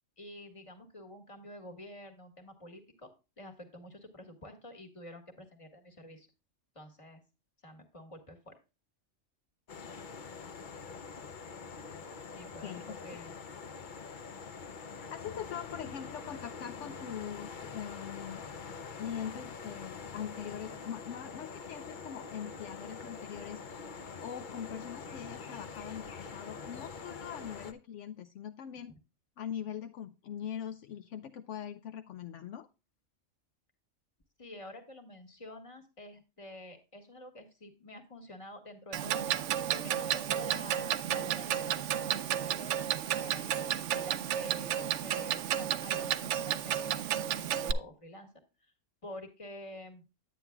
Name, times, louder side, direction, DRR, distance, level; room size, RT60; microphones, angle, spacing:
voice 1, 0.2-6.3 6.7-7.2 7.6-8.6 12.3-13.4 34.4-39.2 39.7-48.3 48.6-48.7 49.0-50.0, left 1 dB, 25° left, 5 dB, 1.6 m, -49 dB
sound 1, 9.7-27.7, left 5 dB, 45° left, 0.8 m, -45 dB
voice 2, 12.6-13.0 15.0-18.4 19.0-23.6 24.2-28.9 29.4-32.7, left 9 dB, 75° left, 9 dB, 0.9 m, -42 dB
Clock, 38.9-47.7, right 10 dB, 70° right, 0.9 m, -32 dB
9.4 x 9.3 x 2.3 m, 0.29 s
omnidirectional pair, 1.3 m